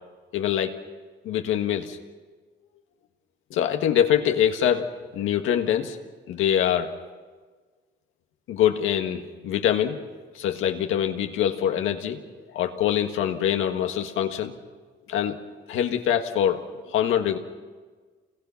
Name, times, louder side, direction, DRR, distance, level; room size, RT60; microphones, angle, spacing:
voice 1, 0.3-0.8 1.2-2.0 3.5-6.0 6.3-6.9 8.5-10.0 10.3-12.2 12.5-14.5 15.1-15.4 15.7-16.6 16.9-17.4, left 10 dB, 85° left, 5 dB, 1.7 m, -24 dB
28.0 x 21.0 x 5.8 m, 1.4 s
cardioid pair, 90°, 20 cm